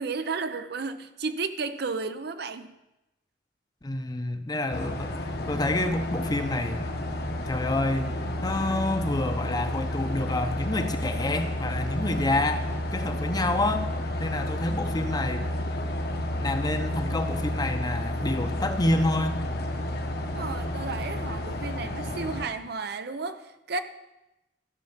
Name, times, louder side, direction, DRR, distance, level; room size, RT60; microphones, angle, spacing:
voice 1, 0.0-2.7 20.3-23.8, right 4 dB, 60° right, 10 dB, 0.7 m, -33 dB
voice 2, 3.8-5.1 5.5-6.8 7.5-8.1 8.4-12.7 12.9-13.9 14.2-15.4 16.4-19.4, left 2 dB, 20° left, 7 dB, 0.8 m, -28 dB
sound 1, 4.7-22.5, left 1 dB, 60° left, 1.2 m, -31 dB
12.5 x 5.7 x 7.2 m, 0.96 s
head